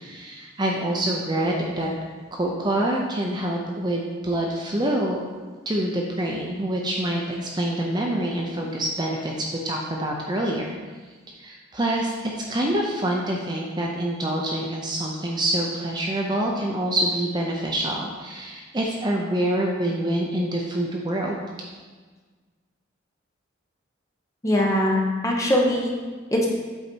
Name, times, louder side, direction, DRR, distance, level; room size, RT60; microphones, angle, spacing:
voice 1, 0.0-1.9 2.3-5.2 5.7-10.7 11.4-21.4, right 1 dB, 20° right, -1 dB, 0.5 m, -26 dB
voice 2, 24.4-26.0 26.3-26.5, left 1 dB, 15° left, -2 dB, 0.9 m, -21 dB
7.9 x 4.1 x 4.5 m, 1.4 s
head